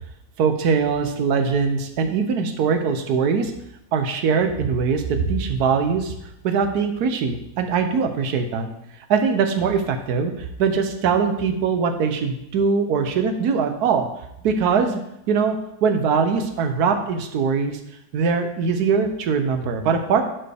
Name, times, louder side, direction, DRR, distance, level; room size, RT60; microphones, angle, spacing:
voice 1, 0.4-3.5 3.9-6.1 6.4-8.7 9.1-14.1 14.4-15.0 15.3-15.6 15.8-17.8 18.1-20.2, right 5 dB, 65° right, 6 dB, 1.2 m, -21 dB
11.0 x 4.5 x 3.4 m, 0.81 s
omnidirectional pair, 2.0 m